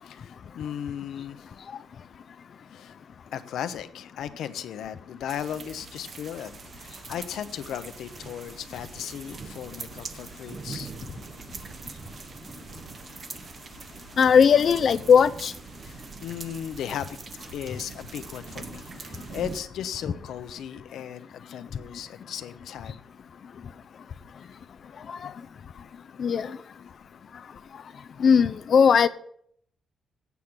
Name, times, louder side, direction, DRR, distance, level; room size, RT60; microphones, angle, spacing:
voice 1, 0.0-1.4 2.7-3.0 3.3-10.9 15.8-17.2 17.5-23.0, left 9 dB, 80° left, 0.8 m, -36 dB
sound 1, 5.3-19.6, right 4 dB, 35° right, 0.7 m, -42 dB
voice 2, 14.2-15.5 25.1-25.3 26.2-26.5 28.2-29.1, left 7 dB, 45° left, 0.5 m, -18 dB
8.3 x 7.8 x 7.3 m
cardioid pair, 165°, 0 cm